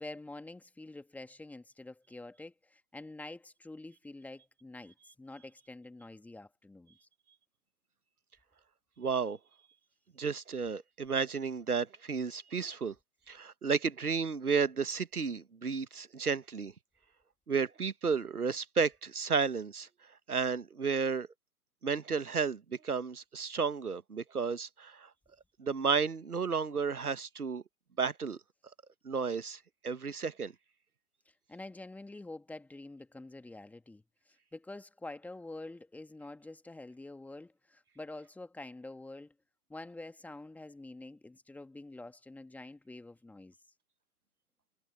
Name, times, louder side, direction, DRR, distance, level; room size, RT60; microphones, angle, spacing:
voice 1, 0.0-7.1 31.5-39.3 39.7-43.6, left 2 dB, 5° left, 1.9 m, -47 dB
voice 2, 9.0-9.4 10.2-12.9 13.3-16.7 17.5-19.9 20.3-21.3 21.8-25.1 25.6-27.6 28.0-28.4 29.0-30.5, right 5 dB, 90° right, 1.3 m, -32 dB
figure-of-eight pair, 125°, 43 cm